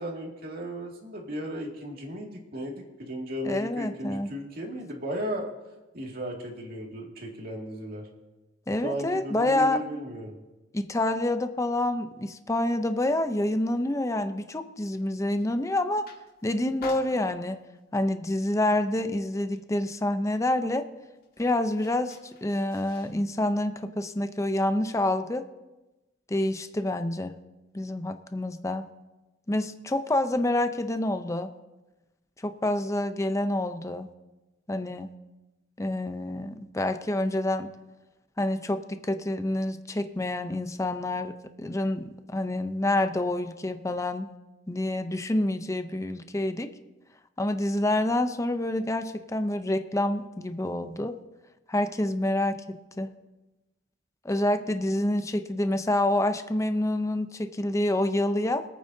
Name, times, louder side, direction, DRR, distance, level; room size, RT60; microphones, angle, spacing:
voice 1, 0.0-5.5 5.9-8.1 8.8-10.4, equal, 55° right, 0 dB, 2.2 m, -35 dB
voice 2, 3.4-4.3 8.7-9.8 10.7-16.1 16.4-17.6 17.9-20.8 21.4-25.5 26.3-27.4 27.7-28.8 29.5-31.5 32.4-34.1 34.7-35.1 35.8-37.7 38.4-44.3 44.7-46.7 47.4-51.2 51.7-53.1 54.2-58.7, left 1 dB, 15° left, 9 dB, 0.6 m, -27 dB
sound 1, 14.9-15.6 15.9-16.4 16.8-17.8 18.3-18.6 18.8-19.7 20.0-20.1 20.3-23.2, left 4 dB, 55° left, 1.9 m, -49 dB
24.5 x 9.0 x 2.7 m, 1.1 s
head